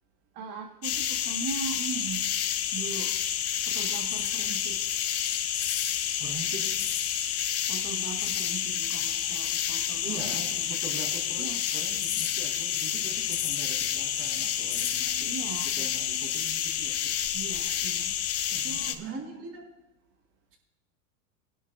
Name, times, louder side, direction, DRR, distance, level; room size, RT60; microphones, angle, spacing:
voice 1, 0.3-2.3 2.7-3.1 3.7-4.8 7.7-10.8 11.4-11.6 15.3-15.9 17.3-18.1 18.5-19.0, right 7 dB, 50° right, 1 dB, 1.5 m, -39 dB
sound 1, 0.8-18.9, left 10 dB, 35° left, 0.9 m, -29 dB
voice 2, 6.2-6.7 10.0-11.5 11.7-15.4 15.8-17.1 18.5-19.6, right 4 dB, 35° right, 0 dB, 3.9 m, -42 dB
21.0 x 11.0 x 2.4 m, 0.98 s
supercardioid pair, 125°, 42 cm